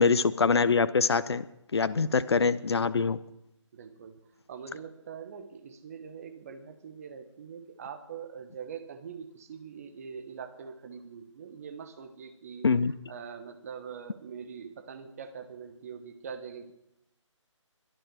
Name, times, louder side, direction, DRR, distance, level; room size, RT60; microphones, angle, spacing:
voice 1, 0.0-1.5 1.7-3.2 12.6-12.9, left 5 dB, 55° left, 15 dB, 0.8 m, -24 dB
voice 2, 1.8-2.3 3.7-4.2 4.5-12.7 13.1-16.7, right 6 dB, 30° right, 8 dB, 1.3 m, -43 dB
22.5 x 10.0 x 4.8 m, 0.84 s
figure-of-eight pair, 150°, 16 cm